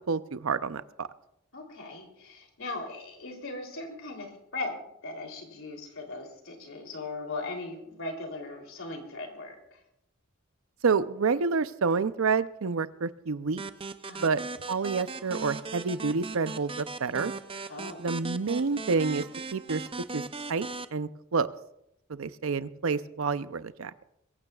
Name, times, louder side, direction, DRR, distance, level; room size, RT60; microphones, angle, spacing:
voice 1, 0.1-1.1 10.8-13.6 14.2-14.4 14.7-17.3 18.0-19.2 19.5-19.8 20.1-20.2 20.5-21.5 22.1-23.9, right 4 dB, 75° right, 14 dB, 0.6 m, -28 dB
voice 2, 1.5-4.7 5.0-9.8 14.0-14.4 17.7-18.1, left 2 dB, 70° left, 3 dB, 3.2 m, -39 dB
sound 1, 13.6-20.9, right 3 dB, 25° right, 0.5 m, -38 dB
23.0 x 15.5 x 2.4 m, 0.80 s
head